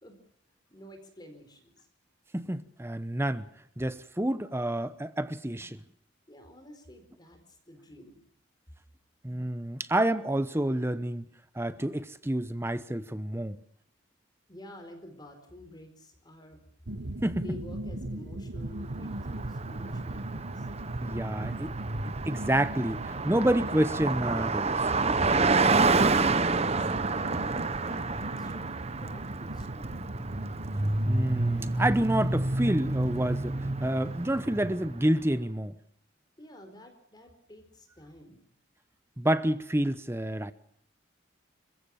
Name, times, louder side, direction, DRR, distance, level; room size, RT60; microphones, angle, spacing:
voice 1, 0.7-1.9 6.3-8.2 14.5-16.6 16.9-20.7 26.3-27.6 27.9-30.0 36.4-38.4, left 1 dB, 20° left, 4.5 m, -50 dB
voice 2, 2.3-3.5 3.8-5.8 9.2-11.2 11.5-13.6 17.2-17.4 21.0-21.7 22.1-24.9 31.1-35.7 39.2-40.5, right 1 dB, 15° right, 0.8 m, -28 dB
sound 1, 16.9-32.6, right 1 dB, 60° right, 1.2 m, -39 dB
Car passing by, 19.0-35.0, right 3 dB, 35° right, 1.1 m, -29 dB
29.5 x 15.5 x 7.2 m
head